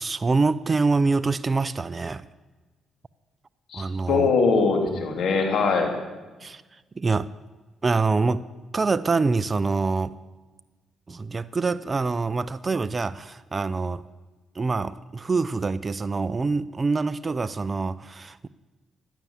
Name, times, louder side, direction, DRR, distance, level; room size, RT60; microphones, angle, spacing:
voice 1, 0.0-2.3 3.7-4.3 6.4-6.6 7.0-7.3 7.8-8.5 8.7-10.1 11.1-14.0 14.6-18.5, right 4 dB, 30° right, 13 dB, 0.5 m, -25 dB
voice 2, 3.7-5.9, left 4 dB, 65° left, 4 dB, 3.1 m, -22 dB
16.5 x 11.0 x 7.3 m, 1.3 s
cardioid pair, 90°, 0 cm